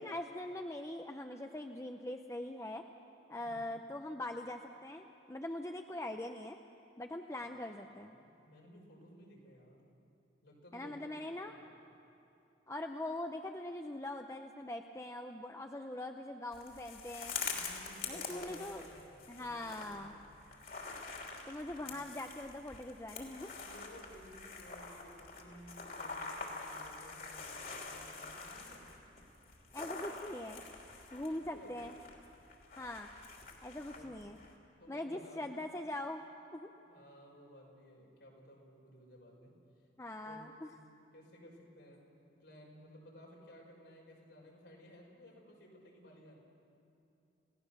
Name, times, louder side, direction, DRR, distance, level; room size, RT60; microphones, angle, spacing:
voice 1, 0.0-2.8 3.3-6.6 7.0-8.2 10.7-11.5 12.7-17.3 18.1-18.8 19.3-20.1 21.5-23.5 29.7-30.6 31.1-31.9 32.8-33.1 33.6-34.4 34.9-36.2 36.5-36.7 40.0-40.7, left 1 dB, 15° left, 4 dB, 0.6 m, -42 dB
voice 2, 3.4-3.7 7.4-7.5 7.9-9.8 10.4-11.2 11.4-11.8 17.5-20.6 21.8-21.9 23.6-28.9 31.5-31.8 33.9-34.2 34.8-35.8 36.9-39.8 40.2-42.0 42.4-46.4, equal, 80° left, -1 dB, 5.5 m, -57 dB
sound 1, 16.5-34.6, left 4 dB, 50° left, 3.1 m, -46 dB
29.0 x 17.0 x 6.7 m, 2.9 s
head